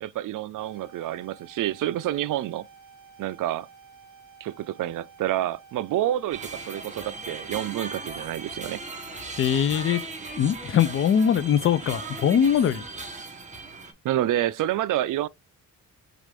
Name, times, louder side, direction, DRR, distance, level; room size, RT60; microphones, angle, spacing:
voice 1, 0.0-2.7 3.2-3.7 4.4-8.8 14.0-15.3, right 13 dB, 60° right, 0.4 m, -28 dB
sound 1, 0.6-9.6, right 6 dB, 40° right, 2.3 m, -51 dB
sound 2, 6.3-13.9, right 3 dB, 20° right, 1.0 m, -38 dB
voice 2, 9.4-10.0 10.3-12.8, left 8 dB, 35° left, 0.4 m, -22 dB
6.4 x 2.5 x 3.3 m
cardioid pair, 145°, 36 cm